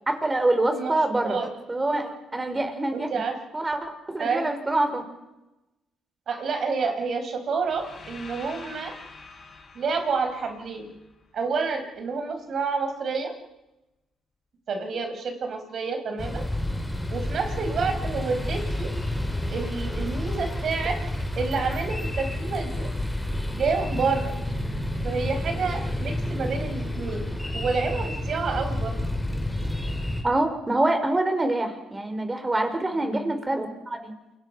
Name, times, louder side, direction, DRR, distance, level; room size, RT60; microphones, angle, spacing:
voice 1, 0.1-3.1 3.5-5.0 30.2-34.1, right 2 dB, 20° right, 6 dB, 4.8 m, -25 dB
voice 2, 2.9-3.4 4.2-4.5 6.3-9.0 9.7-10.9 11.3-13.3 14.7-16.5 17.1-18.9 19.5-21.0 21.3-22.9 23.5-24.3 25.0-29.0 32.9-33.3, right 4 dB, 60° right, 5 dB, 5.0 m, -29 dB
sound 1, 7.6-11.7, left 4 dB, 45° left, 5.8 m, -46 dB
sound 2, 16.2-30.2, left 1 dB, 5° left, 5.1 m, -30 dB
28.0 x 23.0 x 5.7 m, 0.98 s
cardioid pair, 90°, 0 cm